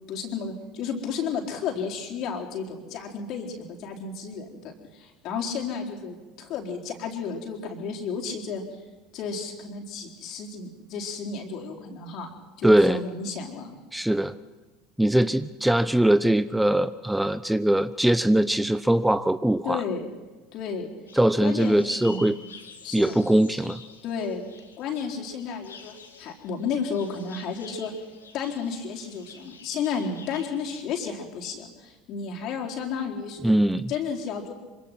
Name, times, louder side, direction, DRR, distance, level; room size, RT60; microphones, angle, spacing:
voice 1, 0.1-8.6 9.1-12.3 12.6-13.8 19.6-20.1 20.5-20.9 21.4-22.3 22.8-23.2 24.0-24.4 24.8-27.9 28.3-33.5 33.9-34.5, left 6 dB, 50° left, 1 dB, 4.3 m, -32 dB
voice 2, 12.6-13.0 13.9-14.3 15.0-19.8 21.1-22.4 22.9-23.8 33.4-33.9, right 1 dB, 5° right, 14 dB, 0.7 m, -21 dB
sound 1, 21.1-30.8, left 5 dB, 80° left, 2.5 m, -48 dB
26.0 x 25.0 x 6.0 m, 1.2 s
figure-of-eight pair, 70°, 0 cm